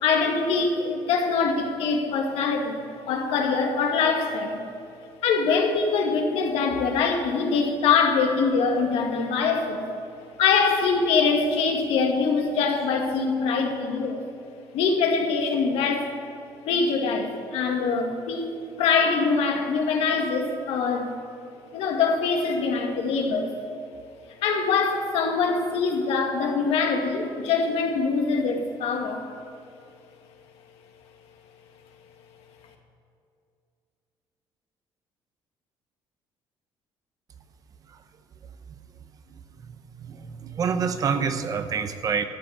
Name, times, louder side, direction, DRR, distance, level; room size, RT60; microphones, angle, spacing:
voice 1, 0.0-4.6 5.2-9.9 10.4-14.2 14.7-16.1 16.7-18.5 18.8-21.1 21.7-23.5 24.4-29.3, left 5 dB, 80° left, 2 dB, 2.0 m, -23 dB
voice 2, 39.7-42.2, right 6 dB, 40° right, 9 dB, 0.8 m, -28 dB
13.0 x 8.2 x 7.3 m, 2.6 s
cardioid pair, 150°, 10 cm